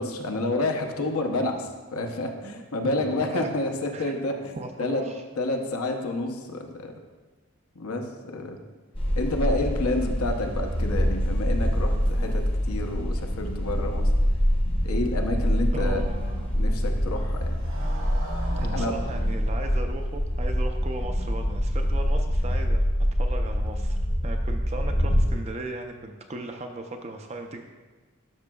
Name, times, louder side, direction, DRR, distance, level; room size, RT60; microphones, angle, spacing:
voice 1, 0.0-5.0 5.4-6.9 7.8-8.6 9.2-14.1 14.8-16.0 16.6-17.6 18.7-18.9 24.9-25.1, left 2 dB, 80° left, 4 dB, 0.8 m, -29 dB
voice 2, 2.4-3.5 3.9-4.1 4.5-5.2 15.7-16.5 18.6-22.8 23.2-24.0 24.2-27.6, right 2 dB, 30° right, 4 dB, 0.4 m, -37 dB
sound 1, 8.9-25.3, equal, 25° left, 0.7 m, -25 dB
Motorcycle, 14.5-22.6, equal, 65° right, 1.1 m, -44 dB
12.0 x 6.0 x 2.3 m, 1.3 s
head